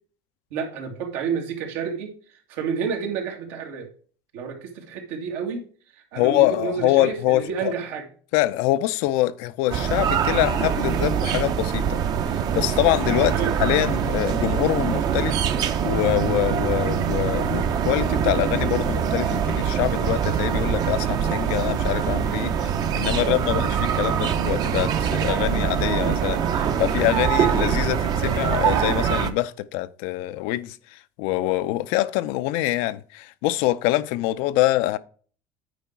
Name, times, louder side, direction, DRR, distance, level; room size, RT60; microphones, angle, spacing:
voice 1, 0.5-3.9 4.3-5.6 6.1-8.1 13.3-13.6 23.2-23.7, right 6 dB, 85° right, 2.2 m, -30 dB
voice 2, 6.2-7.7 8.3-12.0 12.3-22.7 23.0-35.0, left 16 dB, 80° left, 0.5 m, -24 dB
sound 1, 9.7-29.3, right 8 dB, 45° right, 0.8 m, -23 dB
9.2 x 4.6 x 4.5 m
cardioid pair, 140°, 9 cm